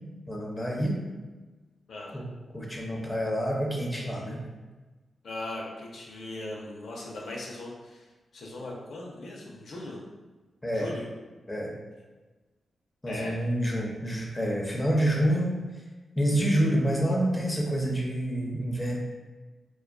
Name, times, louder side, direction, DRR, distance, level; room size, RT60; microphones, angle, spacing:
voice 1, 0.3-1.0 2.1-2.3 2.5-4.4 10.6-10.9 11.5-11.7 13.0-15.5 16.2-19.0, right 1 dB, 15° left, -2 dB, 0.4 m, -27 dB
voice 2, 1.9-2.2 5.2-10.0 10.7-11.1 13.1-13.4, left 2 dB, 75° left, -2 dB, 0.4 m, -39 dB
2.5 x 2.2 x 2.2 m, 1.2 s
cardioid pair, 80°, 0 cm